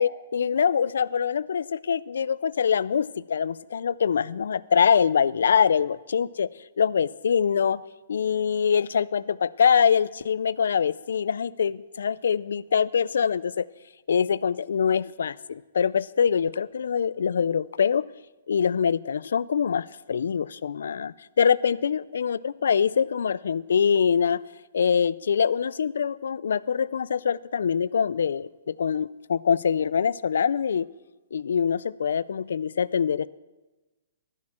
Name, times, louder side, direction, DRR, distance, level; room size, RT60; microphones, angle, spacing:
voice 1, 0.0-6.5 6.8-7.8 8.1-13.6 14.1-18.1 18.5-24.4 24.7-30.9 31.3-33.3, left 7 dB, 80° left, 20 dB, 0.3 m, -24 dB
12.5 x 10.5 x 4.3 m, 1.1 s
hypercardioid pair, 175°, 0 cm